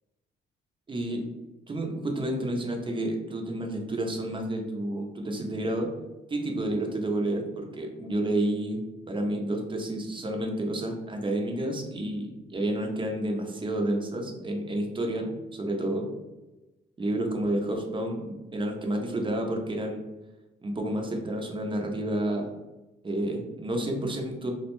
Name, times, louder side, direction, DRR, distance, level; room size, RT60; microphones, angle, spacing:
voice 1, 0.9-1.2 1.7-5.9 6.3-8.8 9.1-16.1 17.0-20.0 20.6-22.5 23.0-24.5, right 1 dB, 25° right, 2 dB, 0.6 m, -30 dB
2.4 x 2.1 x 3.0 m, 1.0 s
cardioid pair, 90°, 20 cm